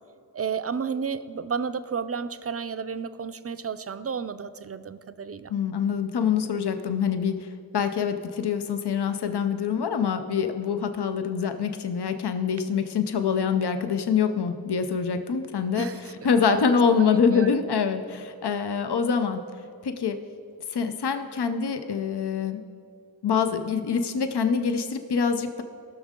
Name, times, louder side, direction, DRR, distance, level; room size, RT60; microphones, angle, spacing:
voice 1, 0.3-5.5 15.7-16.7 16.9-17.6, right 6 dB, 40° right, 12 dB, 0.4 m, -32 dB
voice 2, 5.5-7.5 7.7-15.9 16.2-19.4 19.8-20.2 20.7-22.6 23.2-25.6, left 6 dB, 80° left, 8 dB, 0.6 m, -25 dB
17.5 x 6.3 x 3.7 m, 2.4 s
wide cardioid pair, 60°, 39 cm